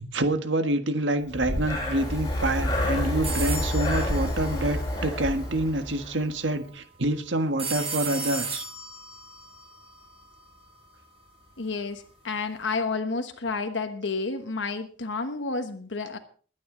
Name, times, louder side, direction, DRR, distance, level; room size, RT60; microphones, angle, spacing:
voice 1, 0.0-8.6, right 1 dB, 80° right, 8 dB, 1.5 m, -27 dB
Breathing, 1.3-6.2, left 1 dB, 20° left, 6.7 m, -28 dB
sound 1, 3.2-5.3 7.6-10.6, right 4 dB, 35° right, 4.2 m, -35 dB
voice 2, 11.6-16.2, left 4 dB, 75° left, 6 dB, 1.1 m, -30 dB
21.5 x 9.5 x 3.9 m, 0.42 s
head